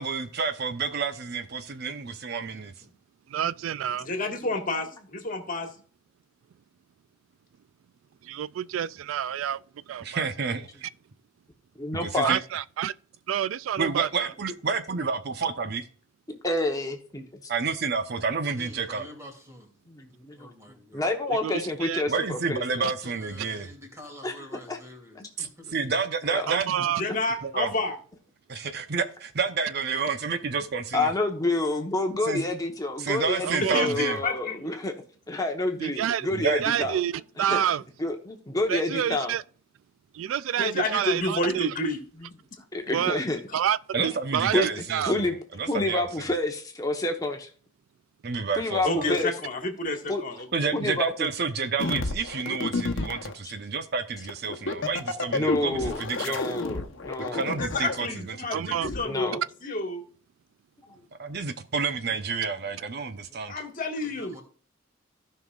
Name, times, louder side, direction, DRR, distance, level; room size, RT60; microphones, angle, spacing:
voice 1, 0.0-2.7 10.0-10.7 11.9-12.4 13.8-15.8 17.5-19.0 22.1-23.7 25.4-27.0 27.4-27.7 28.5-31.1 32.2-32.5 33.0-34.2 36.3-36.6 43.9-45.3 45.6-46.1 48.2-49.1 50.5-56.4 57.3-58.1 58.4-58.8 61.2-63.5, right 5 dB, 55° right, 0.8 m, -29 dB
voice 2, 2.5-2.9 18.6-21.1 22.8-26.0 26.7-26.9 64.0-64.4, left 1 dB, 15° right, 2.7 m, -48 dB
voice 3, 3.3-4.1 8.2-9.6 9.9-10.5 12.2-12.9 13.3-14.3 21.3-22.0 22.8-22.9 26.5-27.0 33.4-33.9 35.8-37.8 38.7-39.4 40.1-41.7 42.9-43.2 43.5-43.8 44.0-45.1 58.5-58.9, right 10 dB, 85° right, 0.3 m, -28 dB
voice 4, 4.0-5.7 27.0-27.9 33.7-34.7 40.6-42.0 43.5-43.6 48.8-50.7 57.6-60.0 63.5-64.3, left 2 dB, 45° left, 1.7 m, -30 dB
voice 5, 11.8-12.3 16.4-17.2 19.9-20.5 20.9-22.9 24.2-24.3 24.7-24.8 25.2-25.3 26.3-26.5 27.1-27.2 30.9-34.9 35.3-37.0 37.4-37.6 38.0-39.3 42.7-43.4 44.5-45.4 45.7-47.5 48.6-49.3 50.1-50.2 50.7-51.3 53.4-53.5 55.3-57.6 59.0-59.4, left 2 dB, 20° left, 1.0 m, -28 dB
sound 1, 51.8-53.3 54.3-58.1 58.8-59.0, left 2 dB, 70° left, 1.0 m, -30 dB
15.5 x 5.7 x 2.4 m
head